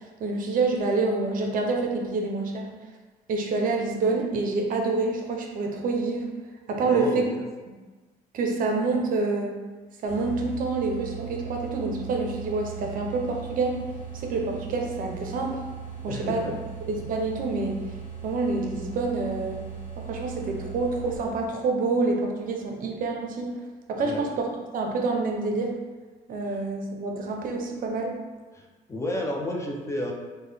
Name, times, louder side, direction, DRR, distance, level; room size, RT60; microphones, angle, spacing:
voice 1, 0.2-2.7 3.3-6.3 6.7-7.2 8.3-9.5 10.0-13.8 14.1-15.6 16.0-16.4 16.9-17.8 18.2-19.7 20.0-23.5 23.9-24.5 24.7-25.8 26.3-28.1, right 3 dB, 55° right, 1 dB, 0.6 m, -27 dB
voice 2, 6.8-7.4 16.0-16.5 24.0-24.2 26.4-26.6 28.5-30.1, left 1 dB, 15° left, 0 dB, 0.4 m, -32 dB
sound 1, 10.1-21.5, right 7 dB, 40° left, 1.2 m, -39 dB
3.7 x 2.1 x 3.2 m, 1.3 s
cardioid pair, 110°, 17 cm